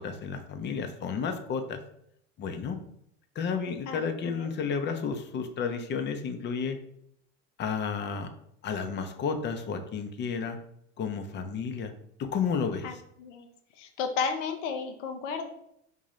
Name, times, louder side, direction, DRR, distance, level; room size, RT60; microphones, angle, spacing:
voice 1, 0.0-1.8 2.4-2.8 3.4-6.8 7.6-8.3 8.6-10.6 11.0-11.9 12.2-12.9, left 6 dB, 30° left, 7 dB, 0.5 m, -32 dB
voice 2, 3.9-4.5 12.8-13.5 13.8-15.5, left 5 dB, 80° left, 4 dB, 0.6 m, -33 dB
3.8 x 2.7 x 3.1 m, 0.73 s
supercardioid pair, 105°, 36 cm